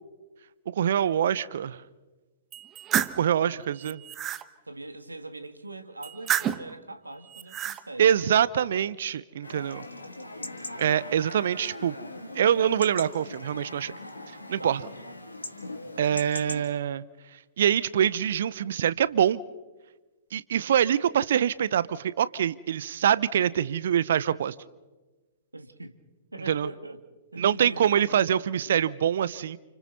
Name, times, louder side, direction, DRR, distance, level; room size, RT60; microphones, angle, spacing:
voice 1, 0.7-1.8 3.2-4.0 8.0-9.8 10.8-11.9 12.3-13.9 14.5-14.8 16.0-17.0 17.6-19.4 20.3-24.5 26.5-26.7 27.4-29.6, right 9 dB, 60° right, 19 dB, 0.7 m, -24 dB
sound 1, 2.5-3.2 3.8-4.4 6.0-6.7 7.3-7.8, right 10 dB, 25° right, 1.0 m, -29 dB
voice 2, 4.7-8.1 14.6-14.8 25.5-26.0 26.3-27.0 27.3-28.4, right 2 dB, 85° right, 9 dB, 2.0 m, -41 dB
Chatter / Livestock farm animals working animals / Chirp tweet, 9.4-16.6, left 1 dB, 85° left, 2.6 m, -40 dB
30.0 x 29.5 x 4.1 m, 1.2 s
figure-of-eight pair, 110°, 0 cm